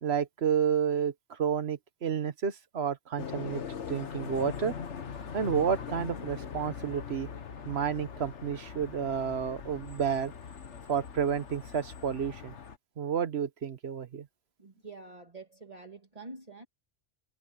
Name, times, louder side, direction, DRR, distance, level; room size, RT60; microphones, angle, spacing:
voice 1, 0.0-3.6 3.9-4.7 5.3-7.3 7.7-10.3 10.9-12.5 13.0-14.3, right 7 dB, 65° right, 1.3 m, -30 dB
sound 1, 3.2-12.8, left 7 dB, 85° left, 1.5 m, -41 dB
voice 2, 14.6-16.6, right 3 dB, 35° right, 2.3 m, -47 dB
omnidirectional pair, 1.2 m